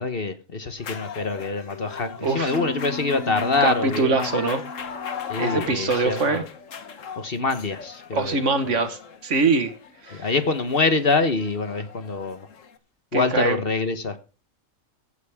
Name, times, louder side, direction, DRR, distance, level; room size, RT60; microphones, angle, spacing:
voice 1, 0.0-4.3 5.3-6.4 7.2-8.4 8.6-8.7 10.2-12.5 13.1-14.2, left 3 dB, 45° left, 1.3 m, -25 dB
sound 1, 0.8-12.8, left 7 dB, 65° left, 1.5 m, -38 dB
voice 2, 2.2-2.6 3.6-4.6 5.4-6.4 8.1-9.7 10.0-10.3 13.1-13.6, right 3 dB, 60° right, 1.8 m, -23 dB
Mallet percussion, 2.5-6.5, equal, 5° right, 1.7 m, -38 dB
16.0 x 9.6 x 3.6 m
omnidirectional pair, 1.4 m